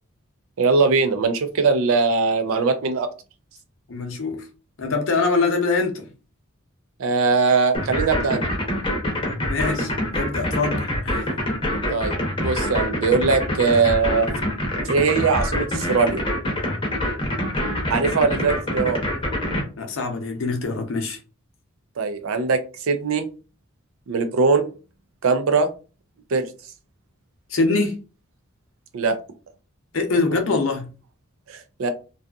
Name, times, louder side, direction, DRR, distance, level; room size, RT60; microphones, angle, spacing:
voice 1, 0.6-3.1 7.0-8.5 11.9-14.3 14.8-16.2 17.9-19.0 22.0-23.3 24.1-24.7 25.2-25.7 26.3-26.5 28.9-29.2 31.5-31.9, right 4 dB, 75° right, 0.4 m, -21 dB
voice 2, 3.9-4.5 4.8-6.1 9.4-11.2 19.8-21.2 27.5-27.9 29.9-30.9, left 3 dB, 65° left, 0.6 m, -24 dB
sound 1, 7.7-19.6, left 1 dB, 25° left, 0.7 m, -25 dB
2.6 x 2.4 x 2.3 m
head